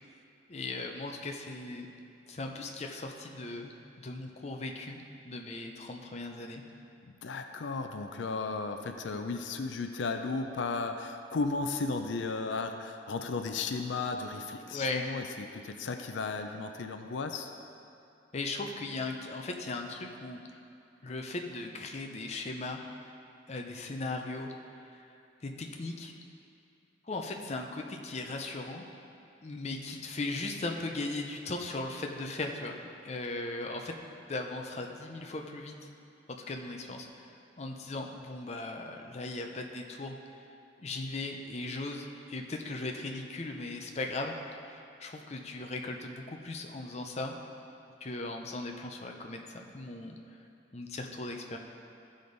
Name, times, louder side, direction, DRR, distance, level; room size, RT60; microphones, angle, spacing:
voice 1, 0.5-1.9 2.3-6.6 14.6-15.1 18.3-20.4 21.0-22.8 23.5-24.5 24.9-25.0 25.4-26.1 27.0-28.9 29.4-33.9 34.3-35.7 36.3-37.3 37.6-40.2 40.8-44.4 44.7-47.4 48.0-50.2 50.7-51.6, left 2 dB, 35° left, 2 dB, 0.6 m, -38 dB
voice 2, 7.2-17.5, left 3 dB, 85° left, 6 dB, 0.5 m, -34 dB
14.0 x 5.1 x 4.0 m, 2.6 s
head